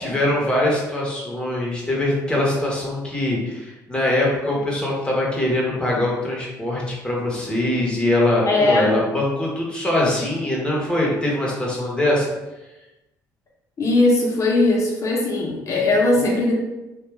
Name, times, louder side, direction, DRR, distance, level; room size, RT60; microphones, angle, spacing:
voice 1, 0.0-12.3, left 1 dB, 10° left, -4 dB, 1.0 m, -22 dB
voice 2, 8.4-8.9 13.8-16.5, left 2 dB, 45° left, -3 dB, 0.9 m, -19 dB
2.4 x 2.3 x 3.3 m, 1.0 s
supercardioid pair, 80°, 8 cm